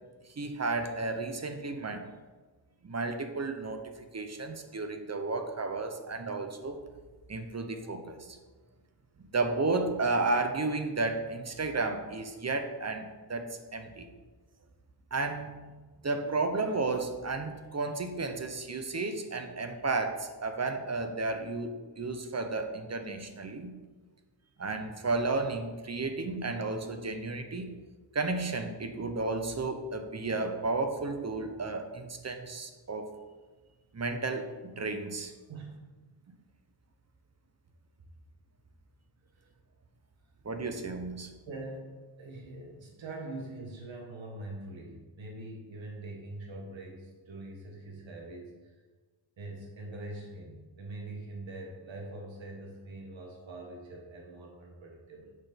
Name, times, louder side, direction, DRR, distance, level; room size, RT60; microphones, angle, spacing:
voice 1, 0.4-2.0 2.8-6.8 7.3-8.4 9.3-14.1 15.1-15.5 16.0-23.7 24.6-27.7 28.1-33.1 33.9-35.3 40.4-41.3, right 3 dB, 35° right, 6 dB, 0.8 m, -33 dB
voice 2, 35.5-36.1 41.5-48.5 49.4-55.3, right 2 dB, 70° right, 0 dB, 1.6 m, -43 dB
6.6 x 6.0 x 5.2 m, 1.3 s
wide cardioid pair, 110°, 47 cm